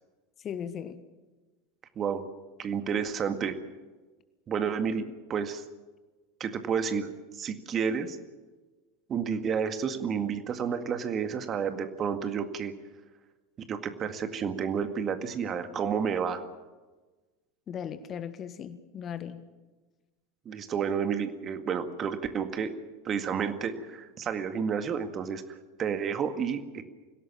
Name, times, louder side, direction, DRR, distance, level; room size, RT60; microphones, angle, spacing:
voice 1, 0.4-1.0 17.7-19.4, left 8 dB, 35° left, 12 dB, 1.5 m, -37 dB
voice 2, 2.0-2.3 2.6-3.6 4.5-5.6 6.4-8.2 9.1-12.7 13.7-16.4 20.5-22.7 23.0-25.4 25.8-26.8, right 7 dB, 30° right, 8 dB, 2.0 m, -30 dB
25.5 x 17.0 x 7.4 m, 1.3 s
figure-of-eight pair, 80°, 0 cm